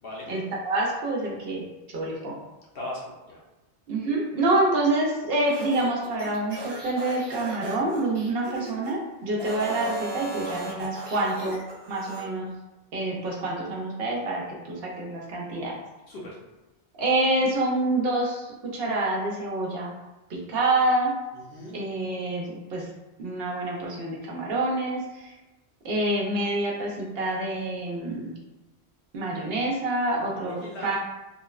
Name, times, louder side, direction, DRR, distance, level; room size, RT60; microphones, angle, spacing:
voice 1, 0.3-1.6 1.9-2.3 3.9-11.6 11.9-12.5 12.9-15.8 17.0-19.9 20.3-21.1 21.7-22.9 23.2-25.3 25.8-28.4 29.1-31.0, right 2 dB, 65° right, -2 dB, 0.8 m, -27 dB
voice 2, 2.7-3.4 16.1-16.4 21.3-21.8 30.4-30.9, left 1 dB, 65° left, -4 dB, 0.8 m, -38 dB
sound 1, 5.4-8.9 9.3-12.3, right 2 dB, 35° right, 0.4 m, -37 dB
2.9 x 2.0 x 2.3 m, 1.0 s
omnidirectional pair, 1.1 m